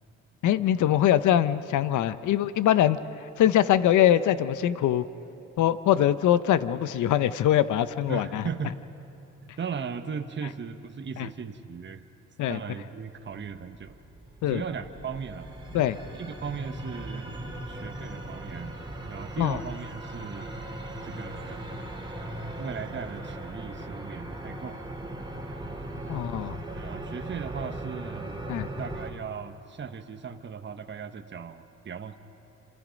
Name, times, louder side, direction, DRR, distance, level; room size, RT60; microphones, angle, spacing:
voice 1, 0.4-3.0 3.4-5.0 5.6-8.4 11.2-11.3 12.4-12.6 14.4-14.6 15.7-16.0 19.4-19.6 26.1-26.6 28.5-28.7, left 11 dB, 75° left, 14 dB, 0.9 m, -23 dB
voice 2, 8.1-8.8 9.4-12.0 12.5-14.0 14.5-15.5 16.1-17.4 17.7-18.8 19.1-20.5 21.0-21.6 22.6-24.8 26.1-26.2 26.7-28.5 28.8-32.2, right 6 dB, 40° right, 7 dB, 1.2 m, -37 dB
sound 1, 13.2-29.1, right 1 dB, 15° right, 2.9 m, -38 dB
29.0 x 27.5 x 5.3 m, 3.0 s
cardioid pair, 90°, 30 cm